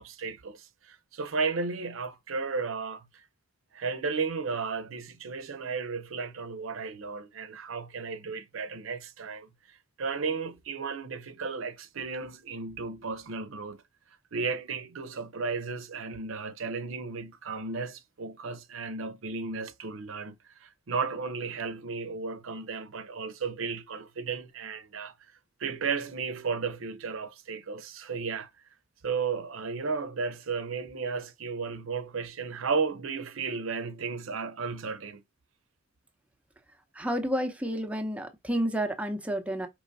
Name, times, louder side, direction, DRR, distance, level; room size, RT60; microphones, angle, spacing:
voice 1, 0.0-3.0 3.7-9.5 10.0-13.8 14.3-20.3 20.6-25.1 25.6-28.5 29.0-35.2, right 4 dB, 90° right, 0.6 m, -34 dB
voice 2, 36.9-39.7, equal, 5° right, 0.7 m, -30 dB
5.0 x 3.0 x 2.6 m
head